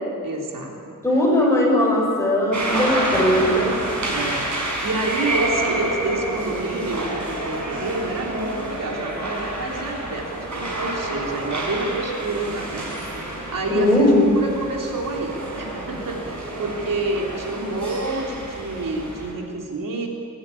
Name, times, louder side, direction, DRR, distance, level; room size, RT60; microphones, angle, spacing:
voice 1, 0.2-0.9 1.4-1.5 4.1-12.9 13.5-20.1, right 2 dB, 85° right, 0 dB, 3.5 m, -28 dB
voice 2, 1.0-3.8 13.7-14.2, left 1 dB, 10° left, -3 dB, 7.3 m, -19 dB
sound 1, 2.5-19.3, right 1 dB, 65° right, 5.7 m, -29 dB
24.0 x 15.0 x 9.8 m, 2.3 s
wide cardioid pair, 140°, 32 cm